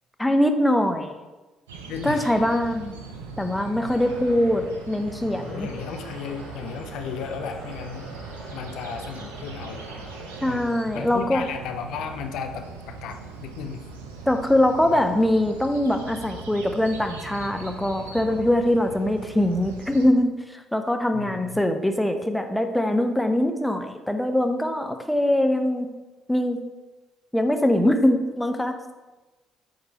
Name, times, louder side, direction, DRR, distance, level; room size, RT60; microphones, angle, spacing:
voice 1, 0.2-1.1 2.0-3.0 3.4-5.7 10.4-11.5 14.3-25.9 26.3-26.6 27.3-28.8, left 1 dB, 5° left, 6 dB, 0.7 m, -22 dB
sound 1, 1.7-20.1, right 4 dB, 85° right, 0.6 m, -40 dB
voice 2, 1.9-2.3 5.4-8.1 8.5-9.9 10.5-10.7 10.9-13.9 14.9-15.0 21.1-21.6, left 7 dB, 65° left, 6 dB, 0.4 m, -35 dB
sound 2, 3.9-10.4, right 1 dB, 70° right, 1.7 m, -44 dB
8.9 x 3.3 x 3.5 m, 1.2 s
hypercardioid pair, 50°, 0 cm